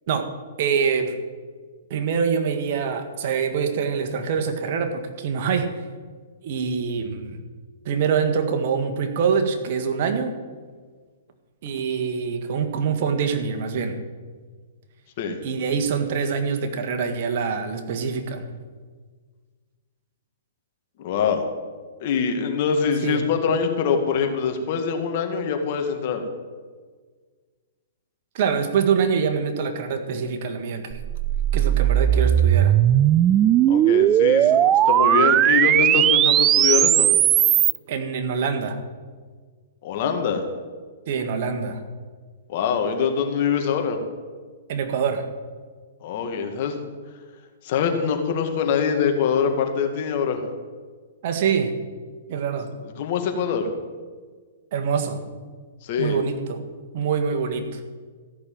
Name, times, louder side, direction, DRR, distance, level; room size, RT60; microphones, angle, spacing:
voice 1, 0.6-1.2 1.9-5.7 6.4-7.4 7.9-10.4 11.6-14.0 15.4-18.5 23.0-23.2 28.3-31.0 31.5-32.8 37.9-38.8 41.1-41.8 44.7-45.3 51.2-51.8 52.3-52.7 54.7-55.2 56.0-56.6 56.9-57.8, right 6 dB, 55° right, 6 dB, 1.7 m, -25 dB
voice 2, 21.0-21.5 22.0-26.3 33.7-37.1 39.8-40.4 42.5-44.0 46.0-46.8 47.6-50.4 53.0-53.7 55.8-56.2, left 6 dB, 50° left, 4 dB, 2.1 m, -24 dB
sound 1, 31.0-37.8, right 11 dB, 25° right, 0.3 m, -18 dB
14.5 x 6.6 x 8.8 m, 1.5 s
hypercardioid pair, 125°, 0 cm